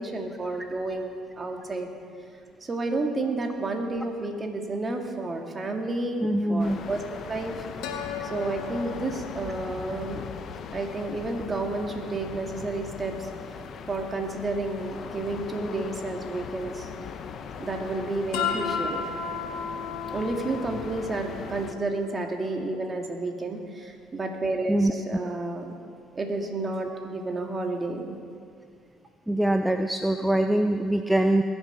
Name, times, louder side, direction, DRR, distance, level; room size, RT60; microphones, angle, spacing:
voice 1, 0.0-1.9 2.6-10.2 10.7-13.3 13.9-16.9 17.6-19.0 20.1-25.7 26.2-28.2, right 2 dB, 30° right, 3 dB, 2.3 m, -31 dB
sound 1, 5.4-5.5 7.8-11.0 11.5-11.6 18.3-22.8, left 6 dB, 80° left, 1.4 m, -35 dB
voice 2, 6.2-6.8 24.7-24.9 29.3-31.4, right 1 dB, 5° right, 6 dB, 0.6 m, -23 dB
sound 2, 6.6-21.7, left 6 dB, 55° left, 1.0 m, -40 dB
21.0 x 7.1 x 6.1 m, 2.2 s
supercardioid pair, 70°, 0 cm